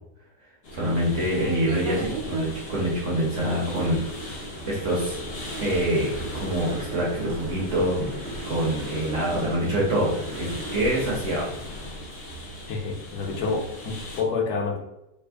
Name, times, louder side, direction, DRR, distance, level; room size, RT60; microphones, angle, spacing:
sound 1, 0.6-14.2, left 1 dB, 50° left, 0.7 m, -38 dB
voice 1, 0.7-4.4 4.7-5.2 5.6-6.1 6.4-8.0 8.4-11.5, right 1 dB, 55° right, -4 dB, 1.0 m, -25 dB
sound 2, 1.3-10.8, right 3 dB, 75° right, 1.2 m, -38 dB
voice 2, 12.7-14.8, left 4 dB, 70° left, 0 dB, 1.2 m, -28 dB
3.4 x 2.1 x 3.4 m, 0.90 s
omnidirectional pair, 1.8 m